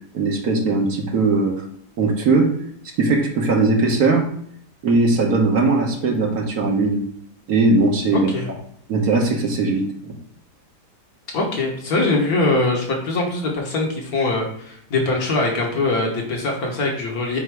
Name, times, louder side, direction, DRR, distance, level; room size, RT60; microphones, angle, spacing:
voice 1, 0.1-1.6 2.0-2.5 3.0-4.3 4.8-7.0 7.5-8.3 8.9-10.1, right 3 dB, 65° right, 1 dB, 1.4 m, -19 dB
voice 2, 8.1-8.5 11.3-17.4, left 2 dB, 60° left, 0 dB, 1.6 m, -22 dB
7.8 x 2.6 x 4.6 m, 0.68 s
omnidirectional pair, 1.8 m